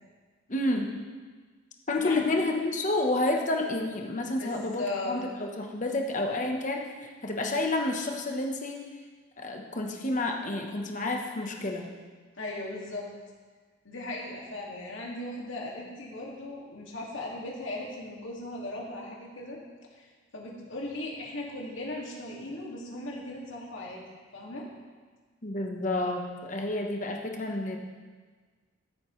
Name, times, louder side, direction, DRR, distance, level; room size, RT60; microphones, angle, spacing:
voice 1, 0.5-1.0 1.9-6.8 7.2-8.8 9.4-11.8 25.4-27.8, left 2 dB, 40° left, 2 dB, 1.1 m, -29 dB
voice 2, 2.0-2.4 4.4-5.1 12.3-13.1 13.8-19.6 19.9-20.1 20.3-24.0 24.3-24.7, left 2 dB, 85° left, -3 dB, 2.2 m, -37 dB
14.0 x 8.3 x 3.2 m, 1.5 s
head